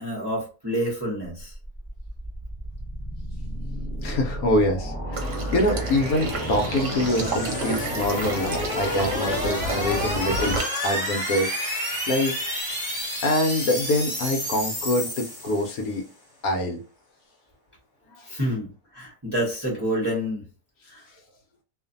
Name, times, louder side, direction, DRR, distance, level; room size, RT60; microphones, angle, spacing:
voice 1, 0.0-1.5 18.3-20.4 20.9-21.0, equal, 20° right, -5 dB, 0.8 m, -28 dB
sound 1, 1.5-15.9, equal, 15° left, 1.1 m, -30 dB
voice 2, 4.0-10.6 10.8-12.3 13.2-16.0 16.4-16.8 18.1-18.3, left 1 dB, 75° left, 4 dB, 1.0 m, -25 dB
Water / Liquid, 5.1-10.6, right 2 dB, 60° right, 1.0 m, -30 dB
2.5 x 2.4 x 2.5 m, 0.35 s
omnidirectional pair, 1.7 m